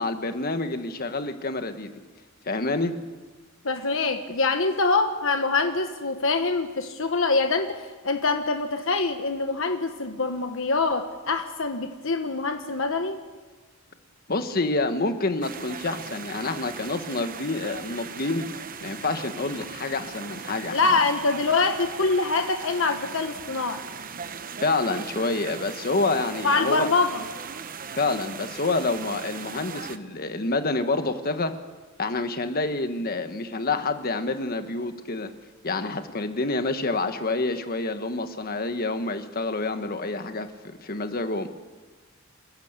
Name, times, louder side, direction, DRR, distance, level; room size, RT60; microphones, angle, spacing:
voice 1, 0.0-1.9 2.4-3.0 14.3-18.5 18.8-21.0 24.6-26.9 28.0-31.5 32.0-35.3 35.6-41.5, left 3 dB, 45° left, 8 dB, 1.5 m, -28 dB
voice 2, 3.6-13.2 20.7-23.8 26.4-27.2, left 3 dB, 65° left, 6 dB, 1.3 m, -24 dB
sound 1, 15.4-30.0, right 6 dB, 40° right, 0.9 m, -39 dB
28.5 x 15.0 x 8.3 m, 1.3 s
head